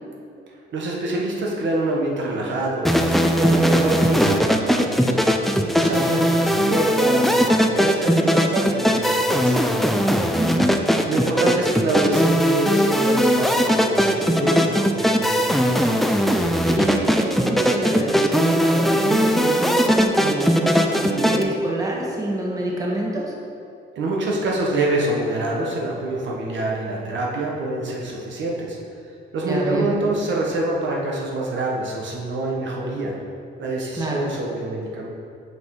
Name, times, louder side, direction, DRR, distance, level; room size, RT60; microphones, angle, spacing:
voice 1, 0.7-5.2 5.7-9.6 11.1-15.6 23.9-28.8 29.3-33.1 33.6-35.1, right 2 dB, 70° right, -2 dB, 1.2 m, -26 dB
sound 1, 2.8-21.4, equal, ahead, 0.5 m, -19 dB
voice 2, 10.3-10.8 16.6-23.3 29.5-29.9 34.0-34.2, right 1 dB, 15° right, -3 dB, 1.5 m, -26 dB
6.4 x 5.3 x 4.7 m, 2.6 s
cardioid pair, 90°, 20 cm